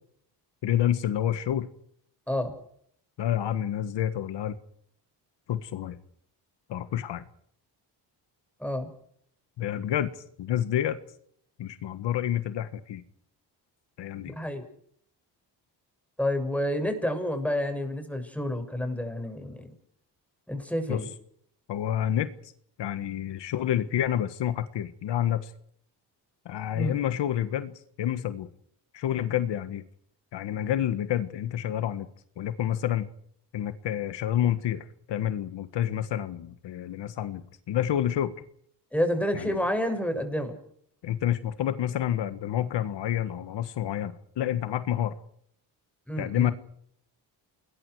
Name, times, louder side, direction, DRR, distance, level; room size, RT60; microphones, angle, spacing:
voice 1, 0.6-1.7 3.2-4.6 5.5-6.0 6.7-7.2 9.6-11.0 11.6-13.0 14.0-14.3 20.9-21.0 21.7-22.5 22.8-25.5 26.4-28.5 28.9-29.8 30.3-32.1 32.4-33.1 33.5-38.3 39.3-39.6 41.0-45.2 46.2-46.5, left 11 dB, 75° left, 11 dB, 1.6 m, -29 dB
voice 2, 2.3-2.6 8.6-8.9 14.3-14.6 16.2-19.7 20.5-21.1 26.8-27.0 38.9-40.6 46.1-46.5, left 1 dB, 5° left, 5 dB, 6.9 m, -29 dB
29.5 x 21.0 x 4.8 m, 0.67 s
cardioid pair, 80°, 43 cm